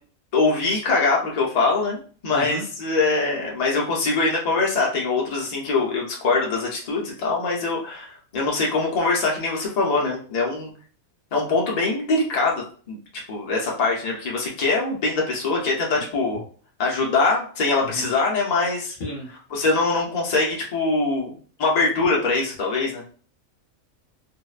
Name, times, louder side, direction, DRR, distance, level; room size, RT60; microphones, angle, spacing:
voice 1, 0.3-10.7 11.3-13.0 13.3-16.4 16.8-19.0 19.5-23.0, left 3 dB, 70° left, -2 dB, 0.3 m, -23 dB
voice 2, 2.3-2.6 15.9-16.0 17.8-18.0 19.0-19.3, left 1 dB, 50° left, -1 dB, 0.8 m, -33 dB
2.6 x 2.1 x 2.3 m, 0.42 s
omnidirectional pair, 1.5 m